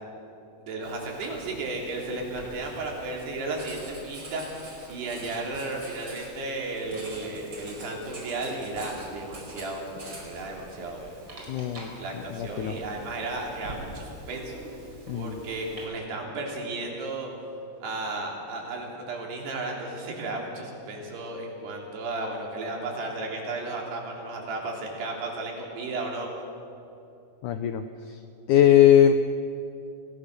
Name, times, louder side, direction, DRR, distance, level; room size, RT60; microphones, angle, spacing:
voice 1, 0.6-11.5 12.0-14.6 15.1-17.3 17.8-26.3, right 2 dB, 85° right, 0 dB, 5.5 m, -34 dB
Writing, 0.8-15.8, right 1 dB, 30° right, 5.4 m, -45 dB
voice 2, 11.5-11.9 12.4-12.7 15.1-15.4 27.4-27.8 28.5-29.1, left 10 dB, 80° left, 8 dB, 1.8 m, -19 dB
28.0 x 18.5 x 6.7 m, 2.7 s
omnidirectional pair, 4.6 m